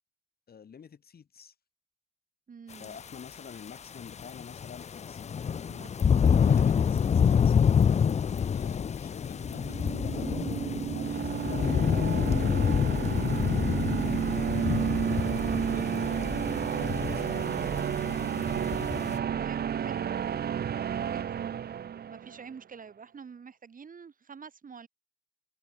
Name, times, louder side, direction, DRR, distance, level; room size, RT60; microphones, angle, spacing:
voice 1, 0.5-1.5 2.8-5.4 6.2-7.8 8.1-10.3 10.9-15.0 15.6-18.7, left 7 dB, 75° left, 4.4 m, -48 dB
voice 2, 2.5-3.0 5.7-6.1 6.7-6.9 15.4-15.8 19.4-20.0 20.9-21.4 22.1-24.9, right 6 dB, 60° right, 2.7 m, -47 dB
sound 1, 2.8-2.9 4.0-19.2, left 7 dB, 45° left, 0.4 m, -27 dB
sound 2, 9.4-22.4, right 8 dB, 90° right, 1.1 m, -31 dB
wide cardioid pair, 110°, 16 cm